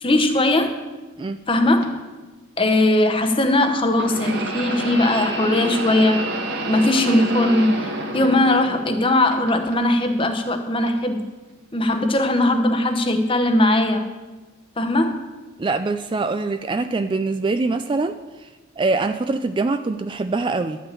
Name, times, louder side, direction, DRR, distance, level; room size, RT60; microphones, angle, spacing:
voice 1, 0.0-0.7 1.5-2.0 2.6-6.3 6.6-11.3 11.7-14.1 14.8-15.2, left 1 dB, 25° left, 6 dB, 0.9 m, -19 dB
sound 1, 1.8-1.9 3.9-9.0 9.3-10.1 10.9-11.0 12.0-12.1, right 2 dB, 55° right, 1.6 m, -28 dB
voice 2, 15.6-18.5 18.8-20.8, right 3 dB, 25° right, 9 dB, 0.3 m, -24 dB
12.0 x 5.9 x 8.3 m, 1.2 s
head